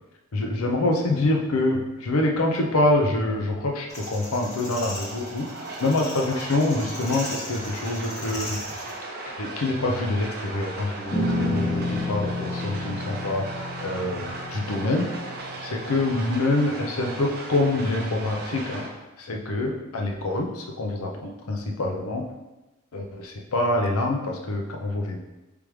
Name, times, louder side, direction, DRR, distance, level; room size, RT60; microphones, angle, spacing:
voice 1, 0.3-8.6 9.3-15.1 15.6-18.9 19.2-22.2 22.9-25.2, left 2 dB, 80° left, 1 dB, 0.6 m, -26 dB
sound 1, 3.9-8.9, left 1 dB, 30° left, 1.5 m, -38 dB
sound 2, 3.9-18.9, right 2 dB, 45° right, 0.6 m, -37 dB
sound 3, 11.1-16.1, left 1 dB, 15° left, 0.5 m, -30 dB
3.4 x 3.1 x 4.8 m, 1.0 s
head